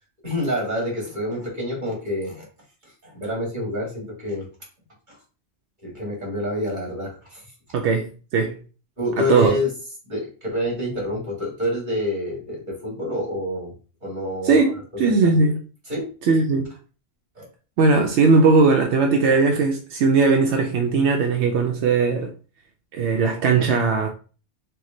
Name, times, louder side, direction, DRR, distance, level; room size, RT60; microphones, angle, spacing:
voice 1, 0.2-2.4 2.8-4.4 5.1-5.2 5.8-7.4 9.0-9.7 10.0-13.7 14.0-14.6 15.0-15.4 15.9-16.0 17.4-17.5, left 1 dB, 45° right, 2.3 m, -27 dB
voice 2, 7.7-8.6 9.2-9.5 14.4-15.6 16.2-16.7 17.8-22.3 22.9-24.1, right 4 dB, 85° right, 0.9 m, -19 dB
4.7 x 2.2 x 3.8 m
omnidirectional pair, 1.1 m